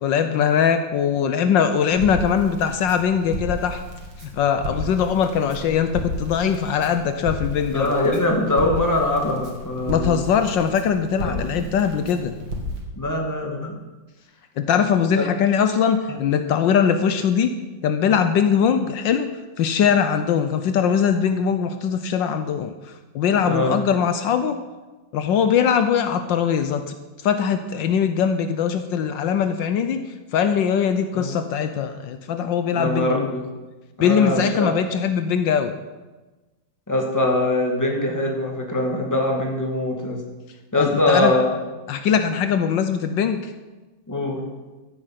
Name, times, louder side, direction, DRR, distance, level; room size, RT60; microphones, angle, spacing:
voice 1, 0.0-3.8 4.3-8.1 9.9-12.3 14.6-17.5 17.8-19.3 19.6-22.7 23.1-24.6 25.1-26.8 27.2-30.0 30.3-33.3 34.0-35.7 40.7-41.3 41.9-43.5, left 7 dB, 75° left, 9 dB, 1.4 m, -21 dB
Crackle, 1.9-12.8, equal, 70° right, 2.8 m, -33 dB
voice 2, 7.7-10.2 11.2-11.7 13.0-13.8 15.2-15.3 23.4-23.8 31.1-31.3 32.7-33.5 34.0-34.8 36.9-40.2 40.7-41.6 44.1-44.4, left 1 dB, 10° left, 0 dB, 1.9 m, -22 dB
14.5 x 8.8 x 5.8 m, 1.2 s
omnidirectional pair, 2.1 m